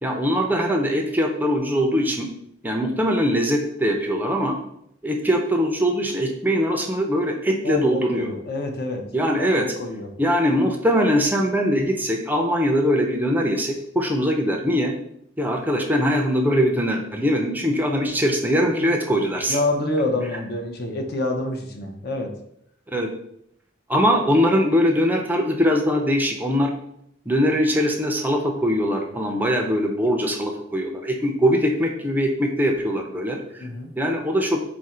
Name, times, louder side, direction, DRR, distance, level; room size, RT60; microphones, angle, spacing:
voice 1, 0.0-2.3 2.6-4.6 5.0-8.3 9.1-9.7 10.2-14.9 15.4-19.6 22.9-23.1 23.9-26.7 27.3-33.7 34.0-34.6, equal, 10° right, 2 dB, 0.4 m, -21 dB
voice 2, 7.6-9.0 9.4-10.1 19.5-22.3 33.6-33.9, left 2 dB, 55° left, 4 dB, 0.6 m, -27 dB
4.2 x 2.5 x 4.2 m, 0.74 s
head